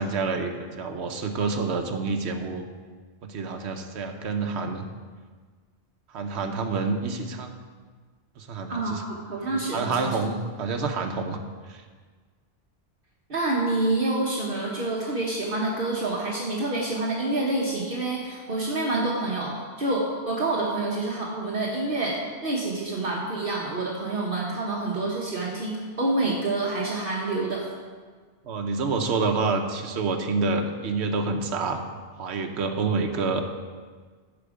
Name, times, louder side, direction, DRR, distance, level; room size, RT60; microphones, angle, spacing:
voice 1, 0.0-2.7 3.2-4.9 6.1-7.6 8.4-9.0 9.7-11.4 11.7-11.8 28.5-31.8 32.2-33.4, right 4 dB, 70° right, 5 dB, 1.1 m, -28 dB
voice 2, 8.7-10.2 13.3-27.7, right 2 dB, 50° right, -3 dB, 1.3 m, -27 dB
12.0 x 5.1 x 4.9 m, 1.5 s
omnidirectional pair, 1.2 m